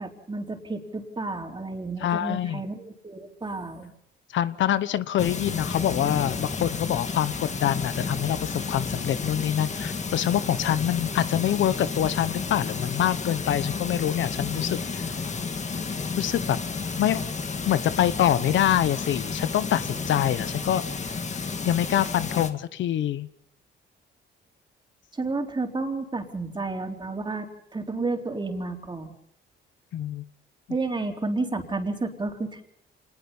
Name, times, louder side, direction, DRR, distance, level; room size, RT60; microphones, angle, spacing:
voice 1, 0.0-3.9 25.1-29.1 30.7-32.6, right 3 dB, 25° right, 3 dB, 3.8 m, -31 dB
voice 2, 2.0-2.6 4.3-15.0 16.2-16.6 17.0-17.2 17.7-20.8 21.7-23.3 29.9-30.2, left 11 dB, 70° left, 15 dB, 1.0 m, -25 dB
sound 1, 5.2-22.5, left 4 dB, 35° left, 2.0 m, -31 dB
26.0 x 20.5 x 5.6 m, 0.69 s
cardioid pair, 90°, 20 cm